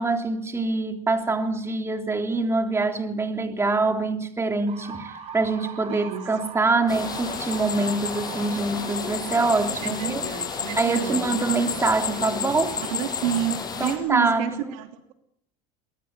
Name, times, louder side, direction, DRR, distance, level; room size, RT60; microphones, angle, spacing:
voice 1, 0.0-10.2 10.8-12.8 13.8-14.8, right 3 dB, 15° right, 3.4 m, -25 dB
sound 1, 4.7-12.5, right 6 dB, 40° right, 6.0 m, -43 dB
voice 2, 5.9-6.3 9.8-11.5 12.8-15.1, right 11 dB, 85° right, 3.1 m, -30 dB
sound 2, 6.9-13.9, left 6 dB, 25° left, 7.1 m, -31 dB
24.0 x 21.5 x 9.6 m
supercardioid pair, 130°, 17 cm